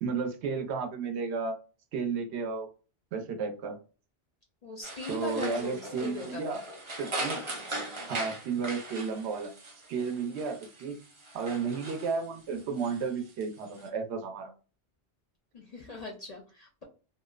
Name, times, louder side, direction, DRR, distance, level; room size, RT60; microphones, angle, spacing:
voice 1, 0.0-1.5 1.9-2.7 3.1-3.8 5.1-6.6 7.0-7.4 8.1-9.5 9.9-11.0 11.3-14.5, right 5 dB, 80° right, 4 dB, 0.9 m, -33 dB
voice 2, 4.6-6.6 15.5-16.8, left 2 dB, 55° left, 0 dB, 0.4 m, -39 dB
sound 1, 4.8-13.9, right 1 dB, 40° right, 0.5 m, -40 dB
2.6 x 2.0 x 2.2 m, 0.36 s
omnidirectional pair, 1.1 m